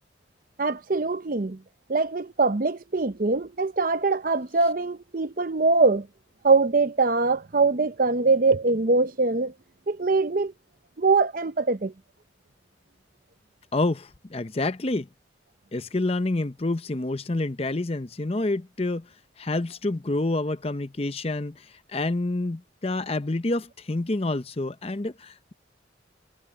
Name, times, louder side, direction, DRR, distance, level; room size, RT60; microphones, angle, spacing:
voice 1, 0.6-1.6 1.9-6.1 6.4-9.5 9.9-10.5 11.0-11.9, right 3 dB, 45° right, 0.7 m, -23 dB
voice 2, 13.7-15.1 15.7-19.1 19.4-25.5, left 2 dB, 30° left, 0.7 m, -28 dB
head